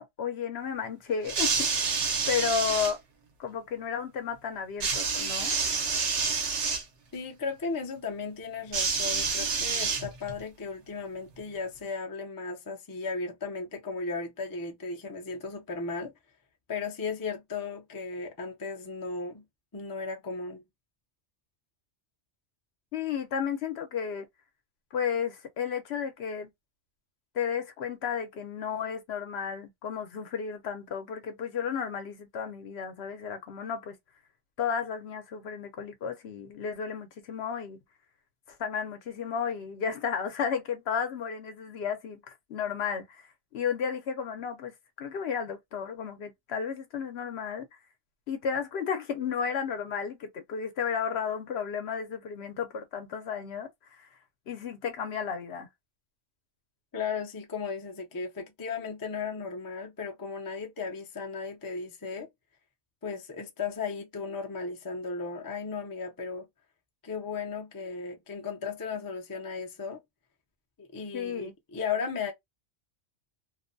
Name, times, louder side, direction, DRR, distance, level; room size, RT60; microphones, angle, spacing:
voice 1, 0.0-3.0 3.4-5.5 22.9-24.3 24.9-26.5 27.3-34.0 34.6-37.8 38.5-43.2 43.5-47.7 48.3-53.7 54.0-54.1 54.5-55.7 71.1-71.5, left 7 dB, 65° left, 0.9 m, -33 dB
sound 1, 1.2-2.9 4.8-6.8 8.7-10.4 11.4-11.5, right 5 dB, 75° right, 1.0 m, -28 dB
voice 2, 7.1-16.1 16.7-19.4 19.7-20.6 56.9-62.3 63.0-66.5 67.0-70.0 70.8-72.3, left 5 dB, 30° left, 0.4 m, -35 dB
2.5 x 2.1 x 2.5 m
omnidirectional pair, 1.2 m